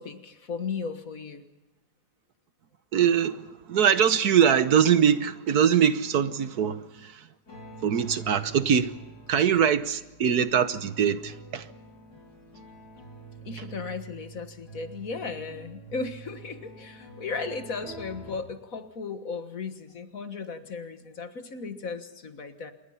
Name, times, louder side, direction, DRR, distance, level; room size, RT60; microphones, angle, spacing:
voice 1, 0.0-1.4 13.4-22.7, left 4 dB, 55° left, 1.9 m, -36 dB
voice 2, 2.9-7.3 7.8-8.9 9.3-11.7, right 8 dB, 65° right, 1.5 m, -23 dB
sound 1, 7.5-18.4, right 4 dB, 70° left, 6.0 m, -46 dB
27.5 x 22.0 x 5.7 m
omnidirectional pair, 1.8 m